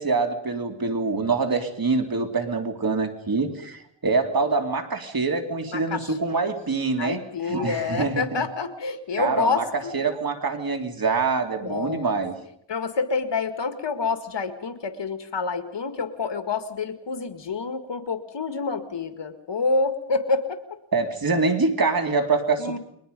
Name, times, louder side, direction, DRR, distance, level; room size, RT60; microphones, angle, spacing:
voice 1, 0.0-8.7 9.2-9.6 9.9-12.3 20.9-22.8, right 4 dB, 50° right, 5 dB, 3.0 m, -25 dB
voice 2, 5.7-6.1 7.0-9.9 11.6-12.2 12.7-20.6 22.6-22.8, left 4 dB, 70° left, 8 dB, 2.1 m, -28 dB
30.0 x 23.0 x 5.4 m, 0.70 s
wide cardioid pair, 105°, 45 cm